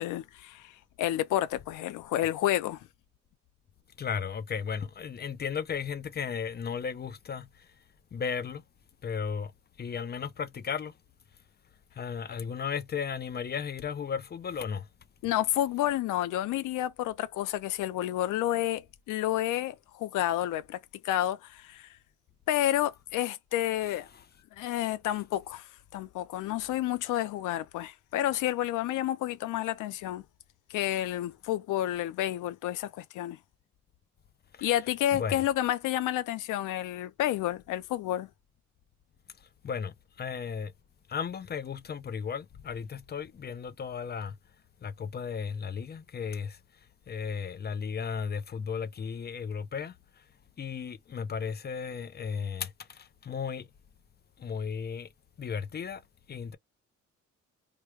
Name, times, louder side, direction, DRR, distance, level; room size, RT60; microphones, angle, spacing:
voice 1, 0.0-2.9 15.2-20.8 21.0-21.9 22.5-24.1 24.6-30.2 30.7-33.4 34.6-38.3, left 13 dB, 85° left, 0.6 m, -30 dB
voice 2, 4.0-7.5 8.1-8.6 9.0-9.5 9.8-10.9 12.0-14.9 23.8-23.9 34.6-34.7 35.1-35.4 39.6-40.7 41.1-44.3 44.8-46.6 47.1-49.9 50.6-53.7 54.4-55.1 55.4-56.0 56.3-56.6, left 6 dB, 35° left, 0.5 m, -35 dB
3.2 x 2.2 x 3.1 m
cardioid pair, 90°, 30 cm